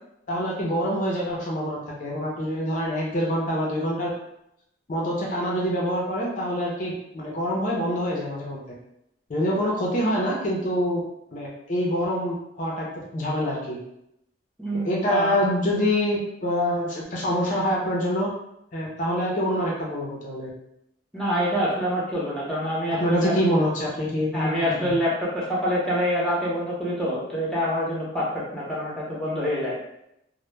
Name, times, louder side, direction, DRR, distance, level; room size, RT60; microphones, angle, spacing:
voice 1, 0.3-4.1 4.9-8.6 9.3-11.0 11.3-12.9 13.1-13.8 14.8-18.3 18.7-20.5 23.0-24.9, equal, 45° left, -3 dB, 0.5 m, -25 dB
voice 2, 14.6-15.5 21.1-23.3 24.3-29.8, equal, 5° left, -6 dB, 0.6 m, -26 dB
2.0 x 2.0 x 3.1 m, 0.81 s
head